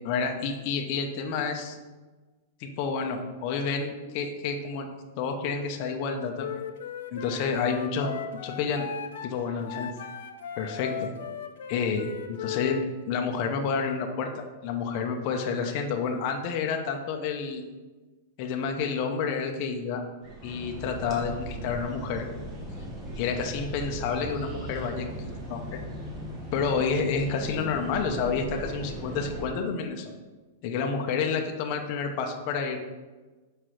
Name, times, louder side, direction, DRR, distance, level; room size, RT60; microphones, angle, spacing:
voice 1, 0.0-1.8 2.6-4.9 5.2-6.5 7.1-8.1 8.4-8.8 9.2-9.9 10.6-10.9 11.7-17.6 18.4-20.0 20.4-22.3 23.2-25.2 25.5-25.8 26.5-30.1 30.6-32.8, left 5 dB, 35° left, 3 dB, 0.8 m, -29 dB
Wind instrument woodwind instrument, 6.4-12.9, left 8 dB, 75° left, 0.7 m, -37 dB
sound 1, 20.2-29.5, right 1 dB, 20° right, 1.4 m, -38 dB
6.0 x 5.6 x 4.9 m, 1.3 s
supercardioid pair, 175°, 0 cm